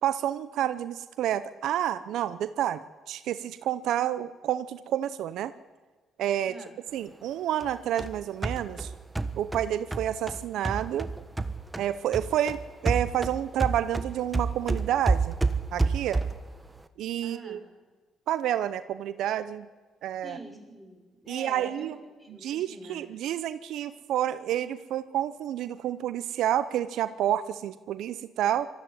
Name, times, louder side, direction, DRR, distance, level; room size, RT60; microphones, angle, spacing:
voice 1, 0.0-5.5 6.2-6.6 6.9-8.9 9.4-11.1 11.8-15.4 15.7-16.2 17.0-17.6 18.3-19.7 20.0-20.4 21.3-21.9 22.4-28.7, right 11 dB, 75° right, 14 dB, 0.6 m, -29 dB
sound 1, 7.6-11.9 12.1-16.5, right 3 dB, 15° right, 1.4 m, -29 dB
voice 2, 17.2-17.6 20.2-23.1, right 1 dB, 5° left, 4 dB, 6.1 m, -45 dB
19.5 x 13.5 x 9.8 m, 1.3 s
supercardioid pair, 55°, 0 cm